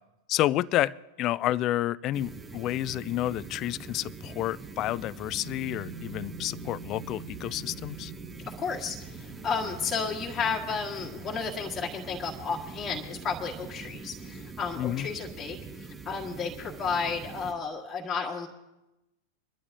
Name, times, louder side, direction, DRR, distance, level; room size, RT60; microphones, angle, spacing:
voice 1, 0.3-8.1 14.8-15.1, left 14 dB, 35° left, 22 dB, 0.4 m, -30 dB
sound 1, 2.1-17.5, right 4 dB, 15° right, 1.1 m, -43 dB
sound 2, 5.4-12.1, right 4 dB, 45° right, 1.3 m, -47 dB
voice 2, 8.5-18.5, left 5 dB, 20° left, -3 dB, 1.7 m, -32 dB
25.0 x 12.0 x 2.8 m, 0.97 s
figure-of-eight pair, 90°, 0 cm